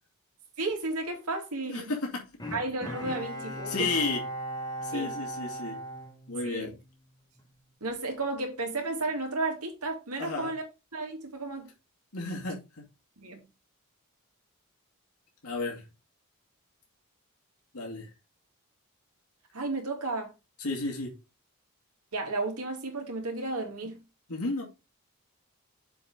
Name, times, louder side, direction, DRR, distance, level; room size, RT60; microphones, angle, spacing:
voice 1, 0.6-1.9 2.5-3.9 4.9-5.1 6.4-6.7 7.8-10.6 10.9-11.7 13.2-13.4 19.5-20.3 22.1-24.0, right 2 dB, 90° right, 2.4 m, -33 dB
voice 2, 1.6-2.2 3.7-4.2 4.8-5.8 6.3-6.8 10.2-10.5 12.1-12.8 15.4-15.8 17.7-18.1 20.6-21.1 24.3-24.6, left 3 dB, 90° left, 2.4 m, -32 dB
Bowed string instrument, 2.4-6.9 7.3-7.4, right 1 dB, 20° left, 1.8 m, -38 dB
7.0 x 5.0 x 4.9 m
head